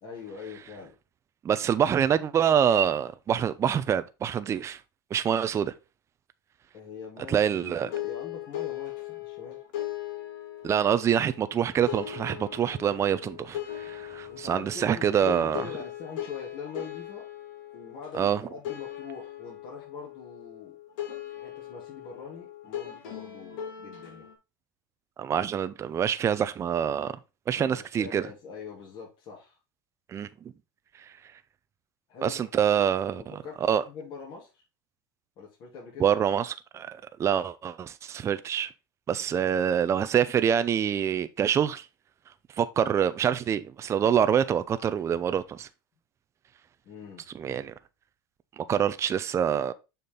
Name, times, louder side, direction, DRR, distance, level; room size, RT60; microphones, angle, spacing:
voice 1, 0.0-0.9 6.7-9.6 13.8-13.9 14.3-17.3 17.7-20.8 21.3-24.3 27.5-29.6 32.1-32.4 33.2-34.6 35.4-36.1 39.3-39.5 46.8-47.3, left 5 dB, 45° left, 3.1 m, -43 dB
voice 2, 1.4-4.8 5.1-5.7 7.3-7.9 10.6-15.7 18.2-18.4 25.2-27.1 27.5-28.3 30.1-30.3 32.2-33.2 33.6-33.8 36.0-38.7 39.1-41.9 42.6-45.7 47.3-47.7 48.6-49.7, right 8 dB, 25° right, 0.6 m, -26 dB
sound 1, 7.9-24.3, left 12 dB, 70° left, 2.8 m, -39 dB
6.8 x 5.3 x 3.8 m
supercardioid pair, 115°, 11 cm